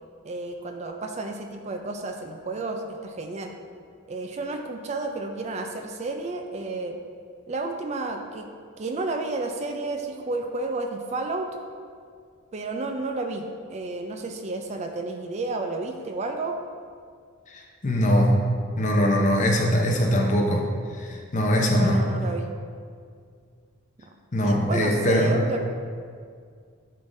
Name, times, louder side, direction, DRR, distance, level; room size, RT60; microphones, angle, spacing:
voice 1, 0.2-3.5 4.1-7.0 7.5-8.5 8.8-11.6 12.5-16.6 21.7-22.5 24.4-25.6, right 3 dB, 35° right, 4 dB, 0.4 m, -31 dB
voice 2, 17.5-18.3 18.8-20.6 20.9-22.0 24.3-25.4, equal, 35° left, 0 dB, 0.8 m, -22 dB
10.5 x 3.7 x 2.6 m, 2.1 s
head